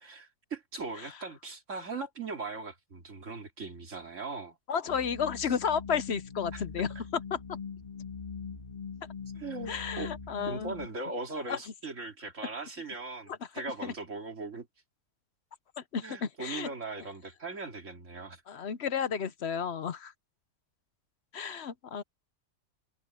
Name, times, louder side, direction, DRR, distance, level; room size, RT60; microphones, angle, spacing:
voice 1, 0.0-4.6 6.5-6.6 9.4-10.1 10.5-14.7 16.0-18.4, right 3 dB, 60° right, 2.7 m, -39 dB
voice 2, 4.7-6.9 7.3-7.4 9.7-10.7 11.5-11.6 13.8-13.9 15.8-16.7 18.5-20.1 21.3-22.0, left 7 dB, 55° left, 0.9 m, -32 dB
sound 1, 4.9-10.9, left 5 dB, 30° left, 2.2 m, -42 dB
omnidirectional pair, 1.5 m